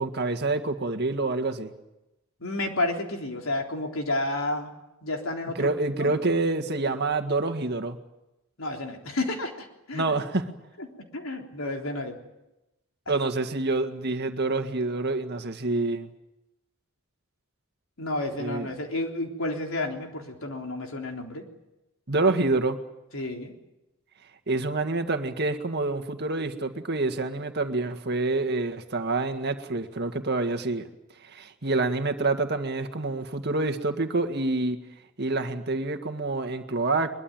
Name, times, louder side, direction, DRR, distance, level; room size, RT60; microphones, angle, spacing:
voice 1, 0.0-1.7 5.6-8.0 9.9-10.4 13.1-16.1 18.4-18.7 22.1-22.8 24.5-30.9 31.2-34.8 35.2-37.1, right 3 dB, 50° right, 7 dB, 1.9 m, -27 dB
voice 2, 2.4-4.7 5.0-5.7 6.0-6.1 8.6-10.0 10.8-10.9 11.1-12.2 18.0-21.4 23.1-23.5, left 2 dB, 70° left, 2 dB, 3.6 m, -31 dB
22.5 x 22.0 x 9.1 m, 0.96 s
head